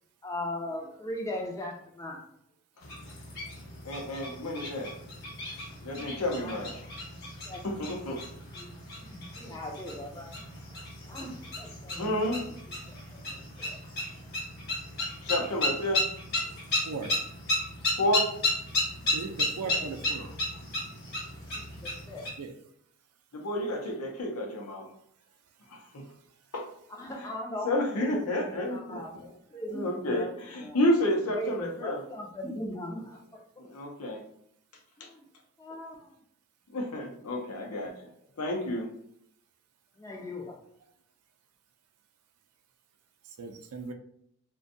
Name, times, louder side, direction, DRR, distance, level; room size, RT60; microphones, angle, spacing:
voice 1, 0.2-2.2 6.4-8.0 8.5-10.3 11.1-12.5 12.9-13.8 17.0-17.2 19.7-19.9 20.1-20.6 21.5-22.3 26.9-30.3 30.6-30.8 31.3-33.2 35.0-35.2 35.6-36.2 37.8-37.9 40.0-40.6, left 1 dB, 15° left, 0 dB, 0.3 m, -40 dB
sound 1, 2.8-22.3, left 1 dB, 45° left, 0.9 m, -34 dB
voice 2, 3.8-4.9 5.8-6.7 7.6-8.2 12.0-12.4 15.2-16.0 18.0-18.3 23.3-24.9 25.7-26.0 26.5-26.7 27.6-29.0 29.7-32.0 33.6-34.2 35.0-35.1 36.7-37.9 38.4-38.9, left 1 dB, 85° left, 1 dB, 0.6 m, -30 dB
voice 3, 19.1-20.3 22.4-22.5 43.2-43.9, right 4 dB, 85° right, 6 dB, 0.4 m, -38 dB
2.5 x 2.2 x 2.6 m, 0.71 s
head